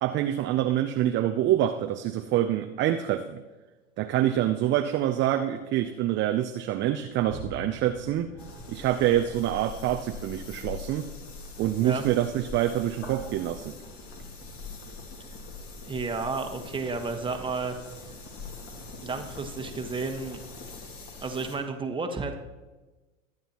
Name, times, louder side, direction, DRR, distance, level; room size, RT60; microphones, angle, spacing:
voice 1, 0.0-3.4 4.0-8.3 8.7-11.1 11.6-13.8, right 12 dB, 30° right, 6 dB, 0.6 m, -26 dB
sound 1, 6.9-14.8 15.3-15.5 17.4-17.5, left 1 dB, 70° left, 4.7 m, -47 dB
sound 2, 8.4-21.6, left 3 dB, 35° left, 2.3 m, -43 dB
voice 2, 15.8-17.8 19.0-20.4 21.2-22.3, right 4 dB, 15° right, 5 dB, 1.3 m, -32 dB
22.5 x 8.8 x 3.0 m, 1.2 s
hypercardioid pair, 100°, 38 cm